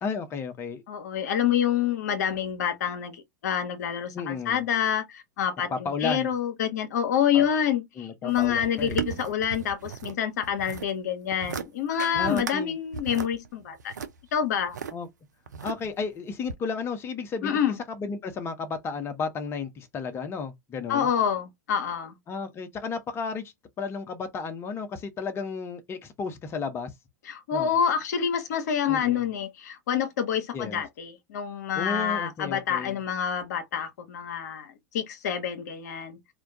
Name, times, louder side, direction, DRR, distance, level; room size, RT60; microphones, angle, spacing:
voice 1, 0.0-0.8 4.1-4.6 5.7-6.3 7.3-7.4 8.0-9.0 12.1-12.8 14.9-15.1 15.6-17.6 17.9-21.1 22.3-26.9 27.5-27.7 28.9-29.3 30.5-30.8 31.8-33.0, left 5 dB, 25° left, 0.6 m, -33 dB
voice 2, 0.9-13.9 14.3-14.8 17.4-17.8 20.9-22.2 27.3-36.2, left 8 dB, 70° left, 0.6 m, -27 dB
sound 1, 8.3-10.1 10.4-10.9 11.3-11.7 12.0-12.6 12.9-14.9 15.5-16.0 16.5-16.6, right 6 dB, 85° right, 0.4 m, -35 dB
2.2 x 2.2 x 2.6 m
hypercardioid pair, 100°, 9 cm